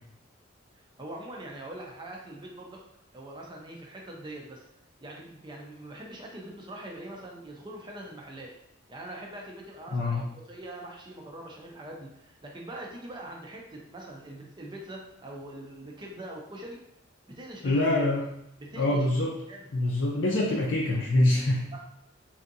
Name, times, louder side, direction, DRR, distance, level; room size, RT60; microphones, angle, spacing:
voice 1, 1.0-2.8 3.1-4.7 5.0-8.5 8.9-16.8 17.3-17.9 18.6-19.0 19.5-19.7 21.7-21.8, right 1 dB, 25° right, -1 dB, 0.4 m, -43 dB
voice 2, 17.6-18.3 18.8-19.4 19.7-21.7, left 1 dB, 65° left, -4 dB, 0.5 m, -25 dB
3.4 x 2.6 x 2.6 m, 0.79 s
head